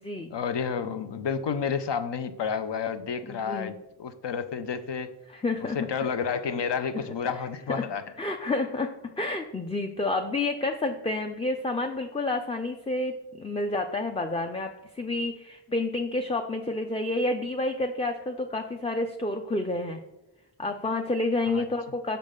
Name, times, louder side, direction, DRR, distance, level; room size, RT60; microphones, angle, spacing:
voice 1, 0.3-5.1 5.7-8.0 21.5-21.7, left 6 dB, 65° left, 11 dB, 0.6 m, -30 dB
voice 2, 3.2-3.8 5.3-5.8 7.7-7.9 8.2-20.0 20.6-22.2, left 2 dB, 15° left, 4 dB, 0.4 m, -29 dB
5.6 x 5.1 x 3.6 m, 0.94 s
wide cardioid pair, 50°, 45 cm